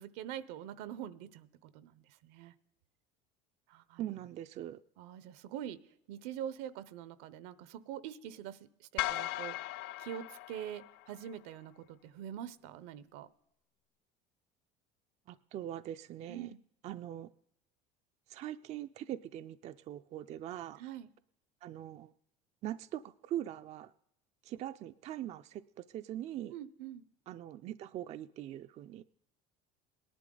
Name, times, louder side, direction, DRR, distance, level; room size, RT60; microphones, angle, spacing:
voice 1, 0.0-2.5 3.7-4.2 5.0-5.8 6.1-13.3 16.3-16.6 20.8-21.1 26.5-27.0, right 10 dB, 75° right, 17 dB, 0.8 m, -44 dB
voice 2, 4.0-4.8 15.3-16.5 16.8-17.3 18.3-20.8 21.6-22.1 22.6-23.9 24.4-26.6 27.3-29.0, right 12 dB, 40° right, 11 dB, 0.4 m, -42 dB
sound 1, 9.0-11.3, left 16 dB, 70° left, 0.4 m, -38 dB
18.5 x 11.0 x 3.8 m, 0.78 s
cardioid pair, 130°, 17 cm